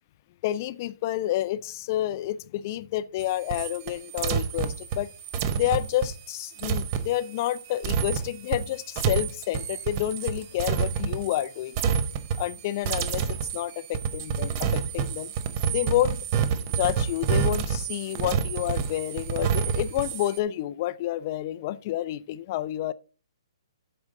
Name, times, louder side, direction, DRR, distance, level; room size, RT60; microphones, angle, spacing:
voice 1, 0.4-5.1 5.5-11.8 12.4-15.3 15.7-16.2 16.7-22.9, left 14 dB, 30° left, 0.3 m, -29 dB
sound 1, 3.2-11.5 11.7-12.6 12.8-20.4, right 7 dB, 30° right, 0.7 m, -28 dB
8.7 x 6.5 x 3.6 m
hypercardioid pair, 160°, 3 cm